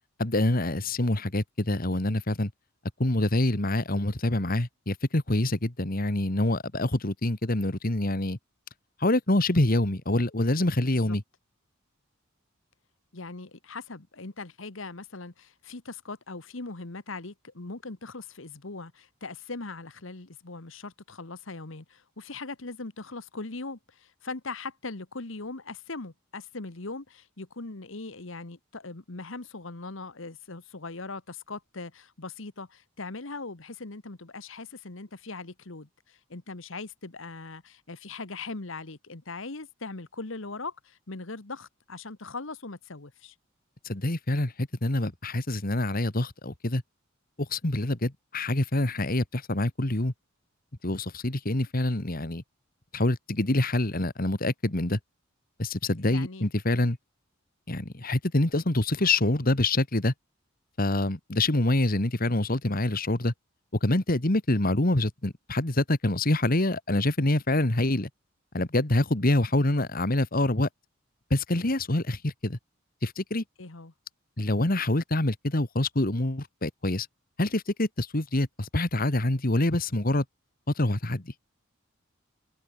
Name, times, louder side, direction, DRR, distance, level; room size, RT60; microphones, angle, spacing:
voice 1, 0.2-2.5 3.0-8.4 9.0-11.2 43.8-46.8 47.4-50.1 50.8-52.4 52.9-55.0 55.6-57.0 57.7-60.1 60.8-63.3 63.8-68.1 68.5-70.7 71.3-72.6 73.0-73.4 74.4-77.1 77.4-80.2 80.8-81.3, left 1 dB, 45° left, 1.9 m, -26 dB
voice 2, 13.1-43.3 56.1-56.5 73.6-73.9, left 3 dB, 70° left, 1.5 m, -40 dB
head